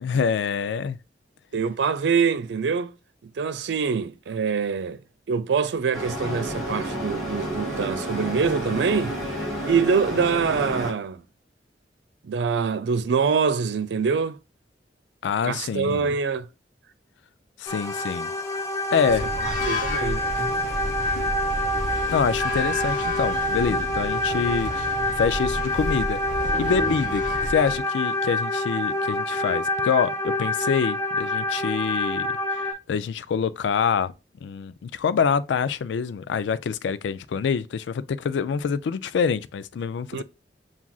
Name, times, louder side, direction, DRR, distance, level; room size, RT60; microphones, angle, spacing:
voice 1, 0.0-1.0 15.2-16.1 17.6-18.3 18.9-19.3 22.1-26.2 26.6-32.3 32.5-34.1 34.4-40.2, left 6 dB, 85° left, 0.3 m, -26 dB
voice 2, 1.5-2.9 3.4-5.0 5.3-9.1 9.6-11.2 12.2-14.4 15.4-16.5 19.4-20.2 40.1-40.2, right 5 dB, 75° right, 0.4 m, -24 dB
sound 1, 5.9-10.9, right 1 dB, ahead, 1.9 m, -30 dB
sound 2, 17.7-32.7, left 1 dB, 15° left, 0.5 m, -27 dB
Moored Boat Metal Grinding Groaning & Creaking, 19.1-27.8, left 1 dB, 45° left, 0.8 m, -31 dB
7.1 x 2.4 x 2.3 m
head